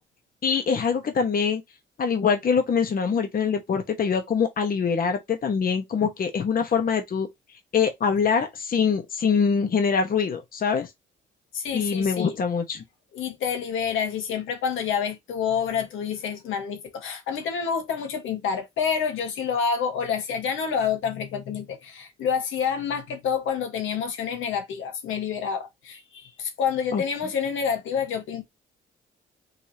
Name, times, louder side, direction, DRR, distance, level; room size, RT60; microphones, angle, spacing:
voice 1, 0.4-1.6 2.0-7.3 7.7-10.9 11.7-12.8 26.9-27.0, left 6 dB, 45° left, 1.2 m, -24 dB
voice 2, 11.5-12.4 13.1-28.4, left 7 dB, 80° left, 1.5 m, -28 dB
5.5 x 3.3 x 2.8 m
cardioid pair, 90°, 20 cm